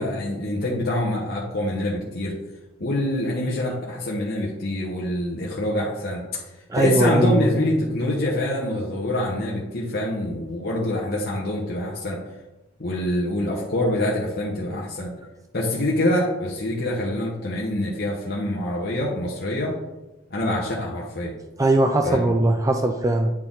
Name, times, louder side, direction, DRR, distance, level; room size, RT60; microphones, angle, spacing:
voice 1, 0.0-2.3 2.8-6.4 6.7-12.2 12.8-15.1 15.5-19.7 20.3-21.3 22.0-22.3, left 1 dB, 50° left, -3 dB, 1.1 m, -25 dB
voice 2, 6.7-7.5 21.6-23.3, right 1 dB, 15° right, 5 dB, 0.3 m, -20 dB
8.7 x 4.2 x 3.8 m, 1.0 s
head